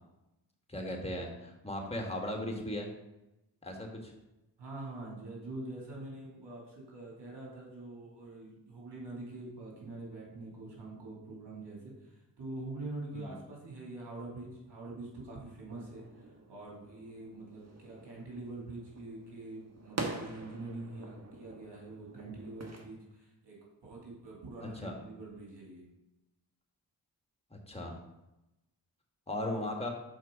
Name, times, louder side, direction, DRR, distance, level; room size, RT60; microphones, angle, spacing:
voice 1, 0.7-2.9 3.6-4.1 13.1-13.4 24.6-25.0 27.5-28.0 29.3-29.9, left 1 dB, 15° left, 1 dB, 1.9 m, -37 dB
voice 2, 4.6-16.0 16.5-25.8, right 2 dB, 70° right, -3 dB, 2.8 m, -45 dB
sound 1, 15.7-22.8, right 3 dB, 35° right, 1.4 m, -45 dB
6.3 x 4.5 x 5.1 m, 0.95 s
supercardioid pair, 40°, 43 cm